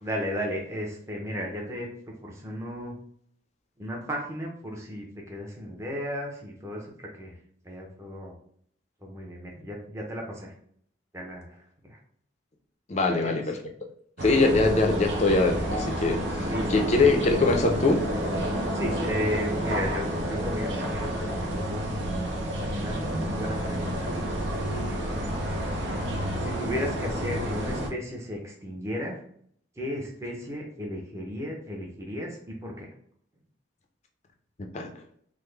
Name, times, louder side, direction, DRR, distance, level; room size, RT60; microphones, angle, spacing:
voice 1, 0.0-1.9 2.2-3.0 3.8-7.4 7.6-8.3 9.0-10.5 11.1-12.0 13.0-13.4 16.4-16.7 17.0-17.1 18.7-22.0 22.7-24.0 25.0-25.4 26.4-29.2 29.8-32.9, equal, 15° right, 0.7 m, -34 dB
voice 2, 12.9-13.6 14.2-18.1 34.7-34.9, left 3 dB, 35° left, 0.4 m, -23 dB
sound 1, 14.2-27.9, equal, 75° right, 0.7 m, -30 dB
3.6 x 2.0 x 3.2 m
head